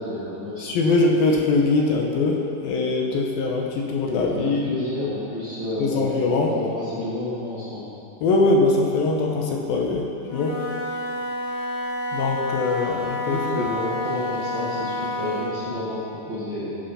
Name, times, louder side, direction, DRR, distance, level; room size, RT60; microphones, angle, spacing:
voice 1, 0.0-0.7 4.3-6.1 6.5-7.9 13.3-16.0 16.3-16.8, left 1 dB, 40° right, -9 dB, 2.0 m, -30 dB
voice 2, 0.6-4.8 5.8-6.6 8.2-10.1 10.3-10.6 12.1-13.7, left 3 dB, 75° left, 0 dB, 2.7 m, -22 dB
Wind instrument woodwind instrument, 10.2-15.6, left 1 dB, 50° left, 2.2 m, -29 dB
17.0 x 6.1 x 5.7 m, 2.7 s
omnidirectional pair, 4.5 m